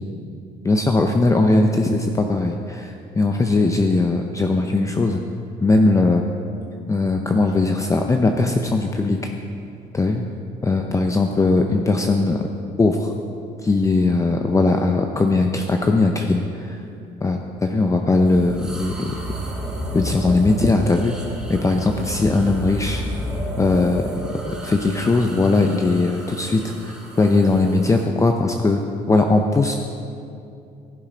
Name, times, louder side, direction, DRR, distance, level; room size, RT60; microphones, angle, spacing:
voice 1, 0.6-5.2 5.6-6.3 6.9-9.3 9.9-10.2 10.6-12.5 12.8-13.1 13.6-16.8 17.2-19.2 19.9-21.1 21.5-23.0 23.6-28.8 29.1-29.8, left 3 dB, 20° left, 4 dB, 0.6 m, -19 dB
sound 1, 18.3-28.1, equal, 5° right, 2.3 m, -31 dB
15.5 x 7.4 x 5.1 m, 2.6 s
cardioid pair, 110°, 17 cm